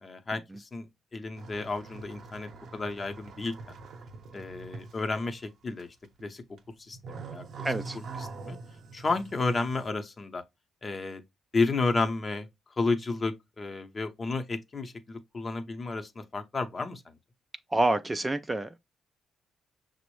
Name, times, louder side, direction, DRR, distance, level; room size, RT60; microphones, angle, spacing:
voice 1, 0.0-3.5 4.3-5.9 6.2-6.4 6.8-7.7 8.2-8.6 8.9-10.4 10.8-11.2 11.5-12.5 12.8-17.0, left 3 dB, 35° left, 0.7 m, -32 dB
sound 1, 1.3-5.5 5.8-6.2 6.6-9.9, right 4 dB, 65° right, 0.7 m, -44 dB
voice 2, 7.6-8.0 17.7-18.8, right 2 dB, 15° right, 0.3 m, -27 dB
5.9 x 2.0 x 3.0 m
cardioid pair, 90°, 0 cm